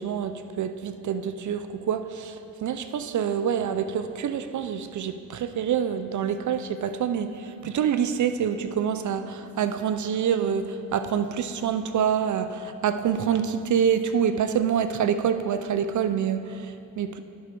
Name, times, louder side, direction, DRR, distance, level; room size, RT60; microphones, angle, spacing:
voice 1, 0.0-17.2, right 8 dB, 50° right, 10 dB, 0.5 m, -26 dB
10.0 x 6.2 x 4.5 m, 2.9 s
cardioid pair, 90°, 37 cm